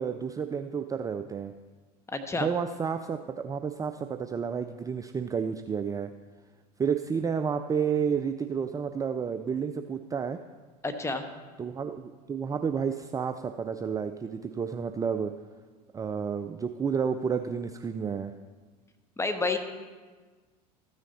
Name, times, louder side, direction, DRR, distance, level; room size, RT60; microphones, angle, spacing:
voice 1, 0.0-1.5 2.3-6.1 6.8-10.4 11.6-15.3 15.9-18.3, right 6 dB, 15° right, 8 dB, 0.4 m, -31 dB
voice 2, 2.1-2.5 10.8-11.3 19.2-19.6, left 3 dB, 15° left, 7 dB, 1.1 m, -29 dB
13.5 x 6.3 x 4.1 m, 1.4 s
hypercardioid pair, 80°, 20 cm